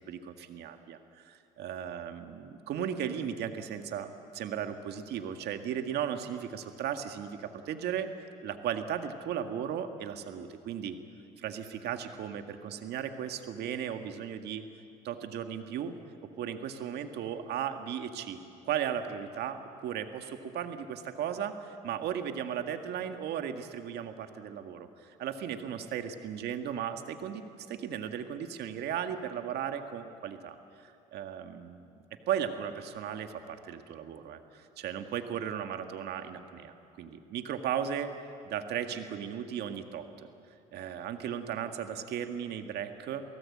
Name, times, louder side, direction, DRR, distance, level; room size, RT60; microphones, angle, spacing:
voice 1, 0.1-8.1 8.4-11.0 11.4-14.6 15.0-15.9 16.2-18.4 18.7-31.9 32.3-38.1 38.4-40.3 40.7-43.2, right 9 dB, 65° right, 7 dB, 1.9 m, -36 dB
28.5 x 18.0 x 8.7 m, 2.6 s
cardioid pair, 100°, 18 cm